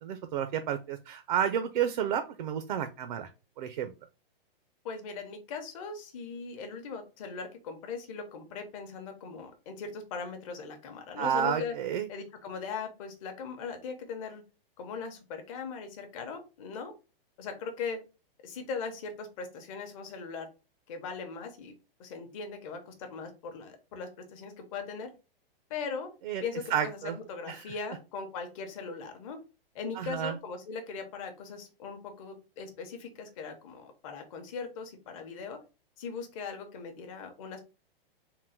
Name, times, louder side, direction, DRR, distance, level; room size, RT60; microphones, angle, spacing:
voice 1, 0.0-3.3 3.6-3.9 11.2-12.1 26.2-26.4 26.7-27.2 27.5-27.7 30.0-30.4, right 9 dB, 50° right, 9 dB, 0.5 m, -31 dB
voice 2, 4.8-11.8 12.1-14.4 14.8-16.9 17.4-18.0 18.4-20.5 20.9-21.7 22.0-25.1 25.7-26.1 26.4-29.4 29.7-35.6 36.0-37.6, left 5 dB, 35° left, 5 dB, 0.8 m, -39 dB
3.7 x 2.1 x 4.2 m, 0.31 s
hypercardioid pair, 160°, 30 cm